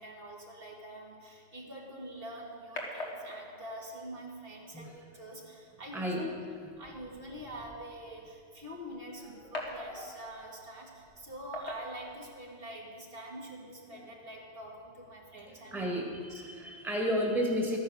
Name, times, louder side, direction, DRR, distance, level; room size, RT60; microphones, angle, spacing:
voice 1, 0.0-4.9 5.1-6.3 6.8-16.0 16.3-16.4, right 1 dB, 60° right, -2 dB, 2.1 m, -45 dB
sound 1, 1.8-12.8, left 1 dB, 85° left, 2.0 m, -47 dB
voice 2, 5.9-6.3 9.7-10.3 13.9-14.0 15.5-17.8, equal, ahead, -1 dB, 1.7 m, -33 dB
13.0 x 9.5 x 6.4 m, 2.2 s
omnidirectional pair, 1.1 m